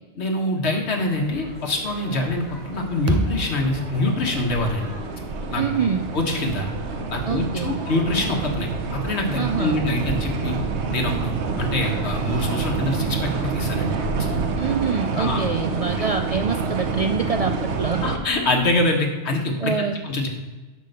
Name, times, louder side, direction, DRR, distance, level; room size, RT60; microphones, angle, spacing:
voice 1, 0.2-4.9 5.5-5.6 6.1-6.7 7.1-10.6 10.9-13.9 15.2-15.4 18.0-19.7 20.0-20.3, left 2 dB, 75° left, 2 dB, 1.6 m, -25 dB
sound 1, 0.9-18.9, left 2 dB, 40° left, 2.5 m, -41 dB
sound 2, 2.3-18.2, right 4 dB, 85° right, 1.0 m, -28 dB
sound 3, 3.1-7.4, right 1 dB, 15° right, 0.6 m, -32 dB
voice 2, 5.6-6.1 7.3-7.8 9.4-9.8 14.6-18.0 19.6-20.0, right 5 dB, 60° right, 6 dB, 0.4 m, -25 dB
10.0 x 3.8 x 6.6 m, 1.2 s
omnidirectional pair, 1.1 m